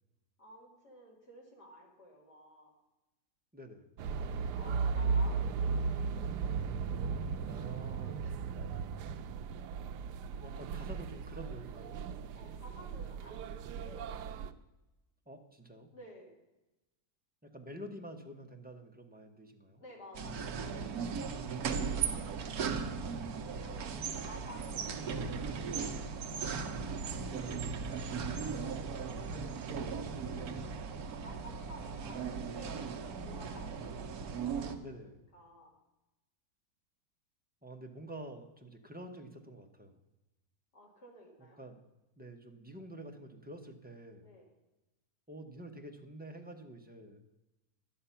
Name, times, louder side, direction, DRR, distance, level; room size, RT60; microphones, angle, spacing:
voice 1, 0.4-2.7 4.5-6.4 10.2-10.3 12.3-14.5 15.9-16.3 19.8-20.5 23.4-26.8 28.4-29.4 30.0-34.8 35.3-35.7 40.7-41.6 44.2-44.5, equal, 75° left, -2 dB, 3.2 m, -54 dB
voice 2, 3.5-3.9 7.4-8.4 10.4-12.0 15.3-15.9 17.4-19.8 27.3-27.7 34.8-35.2 37.6-40.0 41.6-41.8 42.2-44.3 45.3-47.2, right 1 dB, 10° right, 3 dB, 0.6 m, -48 dB
sound 1, 4.0-14.5, right 5 dB, 85° right, 1.2 m, -36 dB
sound 2, 20.1-34.8, right 5 dB, 70° right, 1.3 m, -37 dB
11.0 x 8.6 x 5.7 m, 1.0 s
omnidirectional pair, 1.7 m